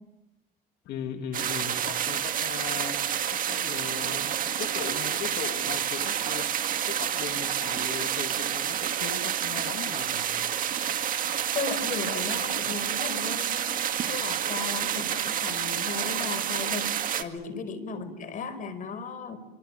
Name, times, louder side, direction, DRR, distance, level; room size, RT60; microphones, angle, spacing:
voice 1, 0.8-3.0 3.3-10.4 17.9-18.0, left 8 dB, 75° left, 4 dB, 1.8 m, -38 dB
sound 1, 1.3-17.2, right 9 dB, 55° right, 2.0 m, -29 dB
voice 2, 11.5-19.4, left 5 dB, 50° left, 9 dB, 5.0 m, -36 dB
26.0 x 24.5 x 8.6 m, 0.94 s
cardioid pair, 110°, 17 cm